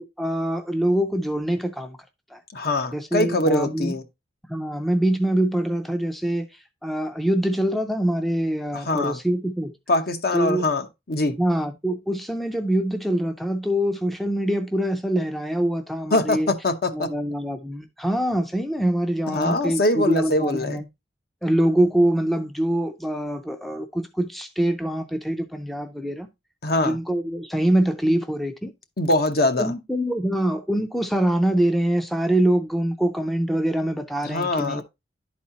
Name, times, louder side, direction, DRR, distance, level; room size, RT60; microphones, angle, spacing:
voice 1, 0.0-2.0 2.3-2.4 2.9-3.9 4.5-6.5 6.8-9.7 10.3-10.7 11.4-16.5 16.9-20.8 21.4-26.3 26.8-28.7 29.6-34.8, right 1 dB, ahead, 0.5 m, -24 dB
voice 2, 2.5-4.0 8.7-9.2 9.9-11.4 16.1-17.1 19.3-20.8 26.6-27.0 29.0-29.7 34.2-34.8, left 1 dB, 55° left, 0.8 m, -23 dB
11.0 x 4.2 x 2.8 m
head